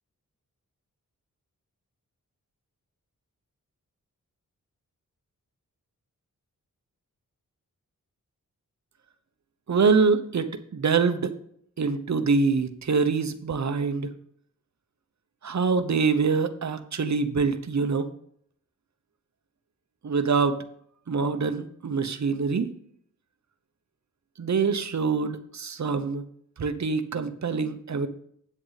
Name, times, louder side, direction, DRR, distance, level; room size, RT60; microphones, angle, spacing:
voice 1, 9.7-11.3 11.8-14.1 15.4-18.1 20.0-20.6 21.1-22.7 24.4-26.2 26.6-28.1, right 5 dB, 55° right, 9 dB, 1.0 m, -25 dB
8.6 x 8.1 x 4.1 m, 0.64 s
wide cardioid pair, 100°, 33 cm